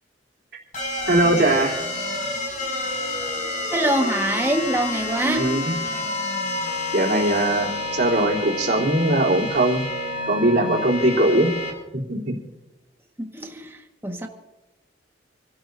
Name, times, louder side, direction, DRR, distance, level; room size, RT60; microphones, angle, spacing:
sound 1, 0.7-11.7, left 2 dB, 45° left, 6.7 m, -29 dB
voice 1, 1.1-1.8 5.2-5.7 6.9-9.8 10.3-11.5 12.1-12.3, right 1 dB, 60° right, 3.6 m, -20 dB
voice 2, 3.7-5.6 13.2-14.3, right 1 dB, 15° right, 1.6 m, -25 dB
29.0 x 12.0 x 2.7 m
head